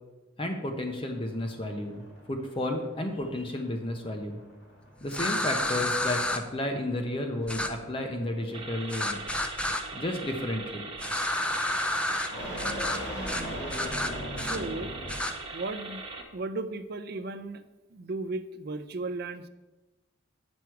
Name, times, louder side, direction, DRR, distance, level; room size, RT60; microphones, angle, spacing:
voice 1, 0.4-4.4 5.0-9.2 9.9-10.8, left 1 dB, 25° left, 4 dB, 0.8 m, -32 dB
sound 1, 0.7-15.3, equal, 60° left, 2.2 m, -42 dB
sound 2, 5.1-6.4 7.5-7.7 8.9-9.8 11.0-12.3 12.6-13.0 13.3-13.4 13.7-14.6 15.1-15.3, left 1 dB, 5° left, 0.4 m, -30 dB
sound 3, 8.5-16.2, right 3 dB, 30° right, 1.0 m, -41 dB
voice 2, 14.4-14.9 15.5-16.0 16.3-17.6 17.9-19.4, right 3 dB, 55° right, 9 dB, 0.5 m, -35 dB
8.0 x 6.2 x 4.6 m, 1.1 s
head